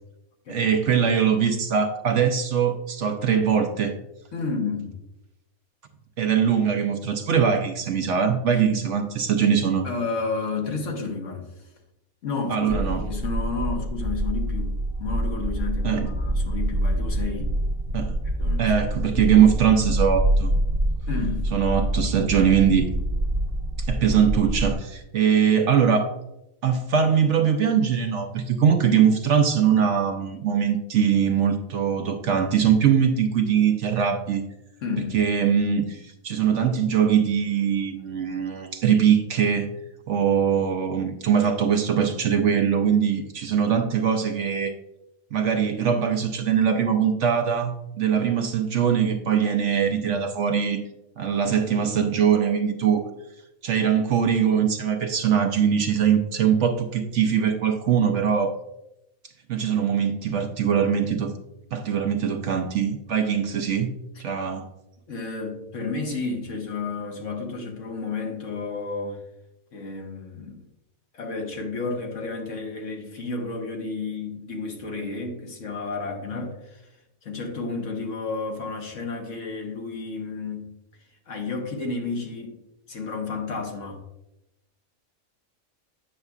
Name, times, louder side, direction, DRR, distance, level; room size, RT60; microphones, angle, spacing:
voice 1, 0.5-4.0 6.2-9.9 12.5-13.0 15.8-16.1 17.9-18.2 18.6-20.5 21.5-22.9 23.8-26.1 26.6-34.4 35.1-39.7 40.1-44.7 45.3-50.8 51.2-53.0 53.6-58.5 59.5-61.3 61.7-63.9 64.2-64.6, right 7 dB, 65° right, 5 dB, 0.9 m, -22 dB
voice 2, 4.3-4.9 8.5-8.6 9.8-11.5 12.2-17.5 18.4-18.7 21.1-21.4 34.8-35.2 65.1-69.2 69.7-70.6 71.1-76.9 77.2-80.7 81.3-82.6 82.9-84.0, left 4 dB, 60° left, 2 dB, 1.5 m, -31 dB
sound 1, 12.7-24.7, right 1 dB, 45° right, 1.8 m, -26 dB
8.8 x 6.6 x 2.4 m, 0.90 s
omnidirectional pair, 1.5 m